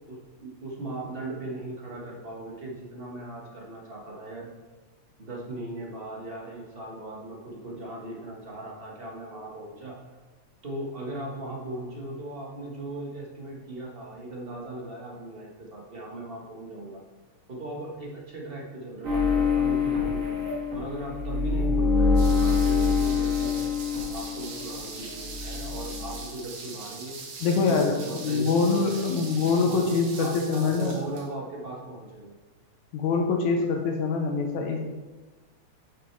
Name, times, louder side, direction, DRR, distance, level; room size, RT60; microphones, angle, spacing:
voice 1, 0.1-4.5 5.2-10.0 10.6-17.0 17.5-20.3 20.7-23.7 24.1-27.2 27.5-29.2 29.6-29.9 30.2-32.3, right 2 dB, 40° right, -2 dB, 0.8 m, -38 dB
sound 1, 19.0-24.8 25.0-26.2, left 5 dB, 55° right, 3.1 m, -25 dB
sound 2, 22.2-31.3, right 4 dB, 80° right, 2.7 m, -41 dB
voice 2, 27.4-31.0 32.9-34.8, left 4 dB, 80° left, 2 dB, 2.2 m, -24 dB
8.0 x 6.6 x 4.5 m, 1.2 s
omnidirectional pair, 3.3 m